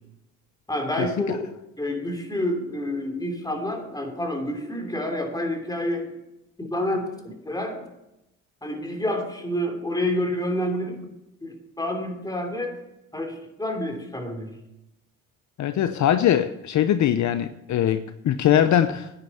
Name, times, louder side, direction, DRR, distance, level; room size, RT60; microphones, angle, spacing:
voice 1, 0.7-1.5 1.8-6.2 6.6-7.9 8.6-11.0 11.4-12.8 13.1-14.5, left 1 dB, 10° left, 3 dB, 3.0 m, -28 dB
voice 2, 15.6-19.1, left 10 dB, 60° left, 11 dB, 0.7 m, -21 dB
9.9 x 9.9 x 7.2 m, 0.88 s
cardioid pair, 105°, 33 cm